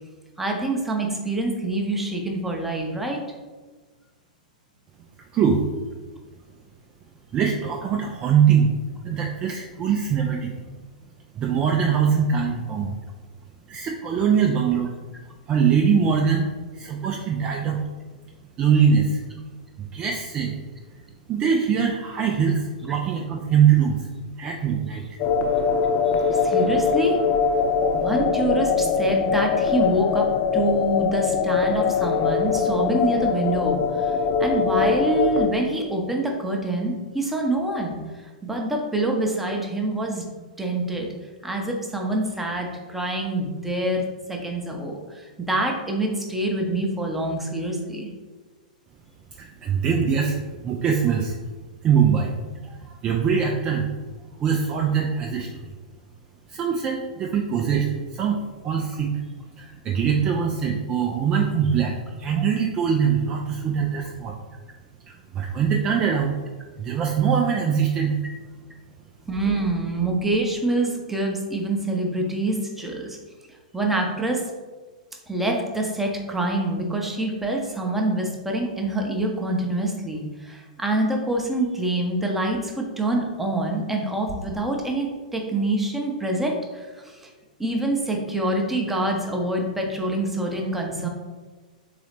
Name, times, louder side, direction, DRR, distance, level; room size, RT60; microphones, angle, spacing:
voice 1, 0.4-3.2 22.9-23.0 26.3-27.2 27.9-30.3 30.5-40.3 40.6-41.1 41.4-48.1 69.3-73.2 73.7-74.4 75.3-87.3 87.6-91.1, right 2 dB, 5° right, 0 dB, 0.8 m, -26 dB
voice 2, 7.3-8.8 9.0-10.5 11.4-12.9 13.7-14.9 15.5-17.8 18.6-19.2 19.9-20.5 21.3-24.1 24.4-25.0 49.4-50.4 50.6-51.4 51.8-52.3 52.6-53.9 54.4-55.7 56.5-58.4 58.6-59.2 59.6-64.3 65.1-66.3 66.8-68.2, right 7 dB, 25° right, 0 dB, 0.4 m, -22 dB
sound 1, 25.2-35.5, left 6 dB, 35° left, 0.4 m, -22 dB
3.9 x 3.9 x 3.3 m, 1.3 s
figure-of-eight pair, 105°, 4 cm